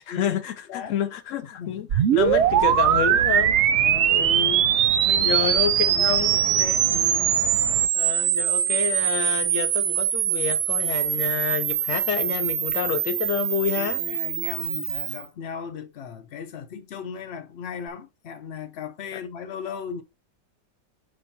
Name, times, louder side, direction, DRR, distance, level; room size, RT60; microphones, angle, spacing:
voice 1, 0.0-4.6 5.1-6.4 7.9-14.0 19.1-19.2, left 9 dB, 85° left, 0.6 m, -29 dB
voice 2, 0.7-1.0 1.6-1.9 3.8-4.3 5.0-5.6 5.9-7.3 13.8-20.0, left 7 dB, 55° left, 0.7 m, -37 dB
sound 1, 1.9-15.2, right 10 dB, 90° right, 0.6 m, -22 dB
sound 2, 2.2-7.9, right 10 dB, 70° right, 1.1 m, -35 dB
6.4 x 6.3 x 2.8 m
omnidirectional pair, 1.9 m